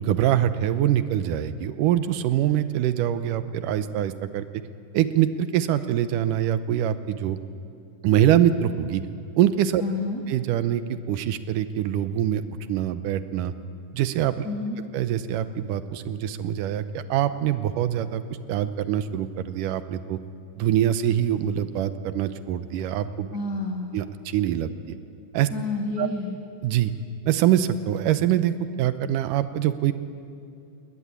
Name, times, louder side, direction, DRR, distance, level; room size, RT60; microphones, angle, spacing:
voice 1, 0.0-4.5 4.9-7.4 8.0-9.0 9.4-9.8 10.3-12.4 12.7-13.5 13.9-14.5 14.9-18.2 18.5-20.2 20.6-23.3 23.9-24.7 25.3-25.5 26.0-26.1 26.6-26.9 27.3-29.9, right 11 dB, 90° right, 11 dB, 2.4 m, -24 dB
voice 2, 9.8-10.2 14.4-14.8 23.3-23.9 25.5-26.4, left 3 dB, 35° left, 1 dB, 1.8 m, -29 dB
20.0 x 20.0 x 9.9 m, 2.6 s
omnidirectional pair, 3.7 m